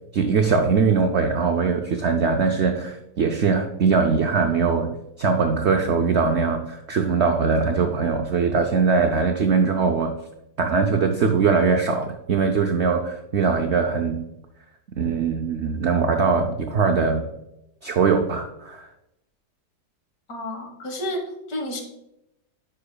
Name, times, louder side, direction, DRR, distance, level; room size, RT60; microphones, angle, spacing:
voice 1, 0.1-10.1 10.6-14.2 15.0-17.3 17.8-18.9, right 5 dB, 80° right, 4 dB, 0.6 m, -21 dB
voice 2, 20.3-21.8, left 1 dB, 65° left, 2 dB, 1.7 m, -31 dB
10.0 x 5.7 x 2.2 m, 0.85 s
omnidirectional pair, 1.8 m